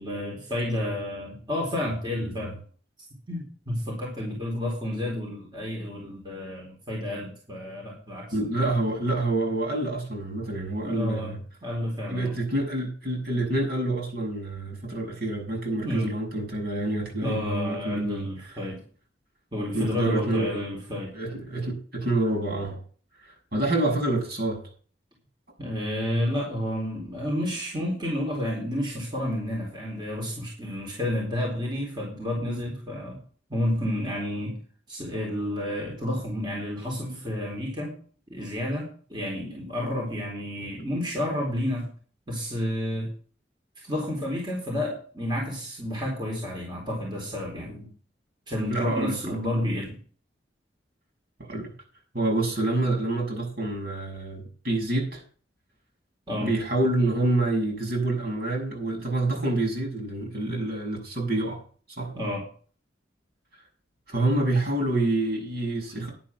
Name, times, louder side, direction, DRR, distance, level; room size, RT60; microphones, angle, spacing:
voice 1, 0.0-2.6 3.3-8.5 10.8-11.4 11.6-12.4 15.8-16.1 17.2-18.8 19.5-21.2 25.6-33.2 33.5-34.6 34.9-38.0 38.3-41.9 42.3-43.1 43.8-47.9 48.5-50.0 56.3-56.5 62.1-62.4, left 1 dB, 25° right, 4.0 m, -30 dB
voice 2, 8.3-11.4 12.1-18.6 19.7-20.6 21.1-22.8 23.2-24.6 48.7-49.4 51.4-51.7 52.1-55.2 56.4-61.6 62.0-62.1 64.1-66.1, right 2 dB, 55° right, 6.9 m, -27 dB
10.5 x 9.1 x 6.1 m
head